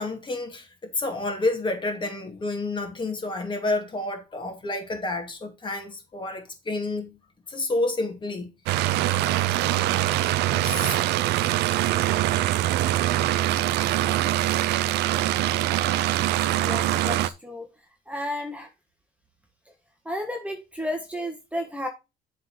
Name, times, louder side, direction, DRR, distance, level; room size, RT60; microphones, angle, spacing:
voice 1, 0.0-7.2 7.5-8.5 10.5-11.1, left 2 dB, 30° left, 2.5 m, -29 dB
sound 1, 8.7-17.3, right 14 dB, 85° right, 0.6 m, -23 dB
voice 2, 16.6-17.7 18.1-18.7 20.0-21.9, left 1 dB, 10° right, 1.5 m, -32 dB
7.4 x 4.0 x 6.3 m
cardioid pair, 110°, 17 cm